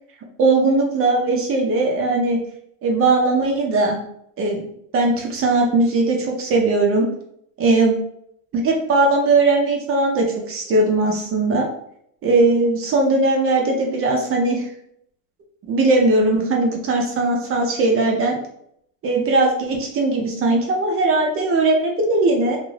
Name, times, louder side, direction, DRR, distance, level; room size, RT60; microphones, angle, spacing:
voice 1, 0.4-2.4 2.8-4.0 4.4-4.6 4.9-7.1 7.6-8.0 8.5-11.7 12.2-14.7 15.7-18.4 19.0-22.6, right 2 dB, 30° right, 0 dB, 0.4 m, -19 dB
2.4 x 2.4 x 3.1 m, 0.72 s
supercardioid pair, 120°, 49 cm